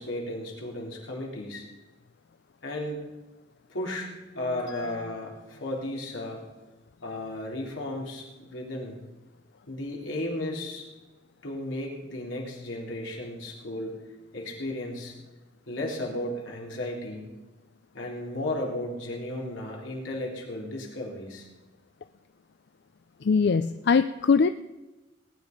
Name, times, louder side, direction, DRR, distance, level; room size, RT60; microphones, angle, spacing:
voice 1, 0.0-1.7 2.6-3.0 3.7-6.4 7.0-9.0 9.7-10.9 11.4-14.0 14.3-15.1 15.7-17.3 17.9-21.5, left 1 dB, 85° left, -1 dB, 3.6 m, -34 dB
voice 2, 23.2-24.5, left 5 dB, 60° left, 11 dB, 0.4 m, -21 dB
19.5 x 10.0 x 5.3 m, 1.1 s
head